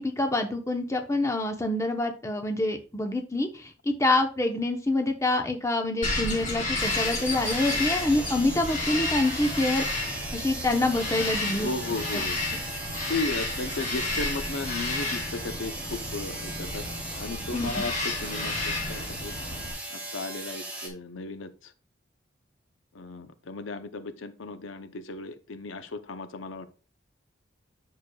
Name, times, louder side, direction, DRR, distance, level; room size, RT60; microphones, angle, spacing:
voice 1, 0.0-11.7 17.5-17.9, left 2 dB, 15° left, 4 dB, 0.9 m, -26 dB
Bird vocalization bird call bird song, 6.0-19.7, left 2 dB, 40° left, 3.7 m, -32 dB
sound 1, 6.8-20.9, right 1 dB, 5° right, 2.2 m, -38 dB
voice 2, 11.5-12.4 13.1-16.8 17.2-17.9 18.2-19.3 19.9-21.7 22.9-26.7, left 3 dB, 85° left, 10 dB, 0.7 m, -35 dB
9.5 x 6.4 x 2.3 m, 0.34 s
head